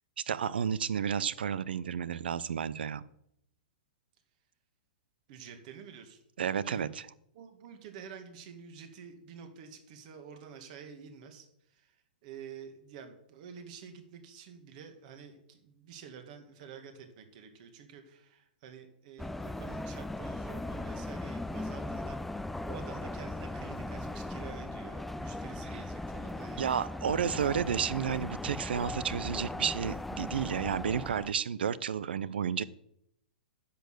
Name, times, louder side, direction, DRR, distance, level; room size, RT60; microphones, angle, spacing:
voice 1, 0.3-3.0 6.4-6.9 26.6-32.6, right 8 dB, 85° right, 20 dB, 0.6 m, -31 dB
voice 2, 5.3-6.2 6.7-7.0 7.3-12.0 12.2-26.6, right 6 dB, 50° right, 6 dB, 2.2 m, -49 dB
sound 1, 19.2-31.3, left 2 dB, 5° left, 0.3 m, -38 dB
10.0 x 6.9 x 7.9 m, 0.76 s
hypercardioid pair, 145°, 5 cm